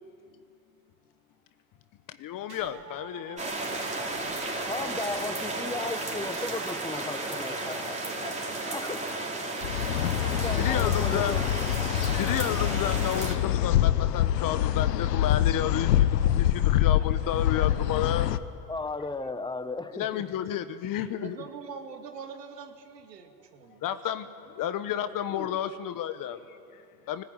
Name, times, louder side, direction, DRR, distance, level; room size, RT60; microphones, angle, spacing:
voice 1, 2.1-4.3 4.5-4.7 10.6-11.4 12.1-18.3 19.9-21.4 23.8-27.2, left 11 dB, 45° left, 11 dB, 1.2 m, -32 dB
sound 1, 2.5-6.9, right 8 dB, 60° right, 3.2 m, -47 dB
sound 2, 3.4-13.3, right 2 dB, 15° right, 3.9 m, -33 dB
voice 2, 4.6-8.3 8.7-9.6 10.3-11.5 18.7-20.2 25.3-25.6, left 3 dB, 10° left, 11 dB, 1.3 m, -36 dB
sound 3, 9.6-18.4, left 11 dB, 85° left, 0.9 m, -25 dB
voice 3, 21.2-24.0, right 6 dB, 90° right, 5 dB, 2.4 m, -43 dB
20.0 x 19.0 x 9.0 m, 2.5 s
hypercardioid pair, 85°, 48 cm